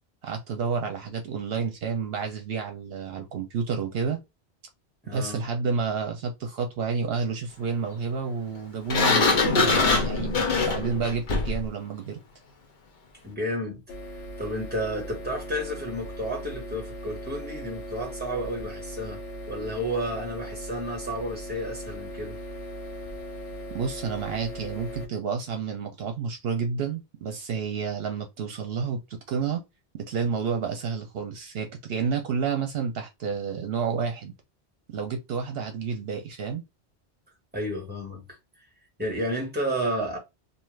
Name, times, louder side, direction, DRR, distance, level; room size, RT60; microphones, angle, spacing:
voice 1, 0.2-4.2 5.1-12.2 23.7-29.6 29.9-34.3 34.9-36.6, right 5 dB, 70° right, 0.8 m, -30 dB
voice 2, 5.0-5.4 13.2-13.8 14.4-19.2 19.5-22.4 37.5-38.4 39.0-40.2, equal, 10° right, 1.3 m, -31 dB
Sliding door, 8.9-11.7, left 3 dB, 55° left, 0.8 m, -23 dB
sound 1, 13.9-25.1, equal, 80° left, 1.0 m, -38 dB
2.6 x 2.4 x 3.1 m
omnidirectional pair, 1.1 m